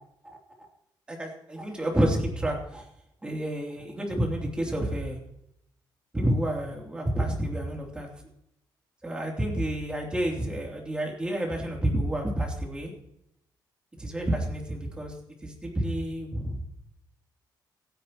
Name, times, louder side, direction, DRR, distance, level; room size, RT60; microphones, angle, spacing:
voice 1, 1.1-2.8 3.2-5.2 6.1-8.1 9.0-12.9 14.0-15.1 15.4-16.7, right 1 dB, 10° right, -1 dB, 3.1 m, -29 dB
26.0 x 10.0 x 3.0 m, 0.79 s
cardioid pair, 160°, 8 cm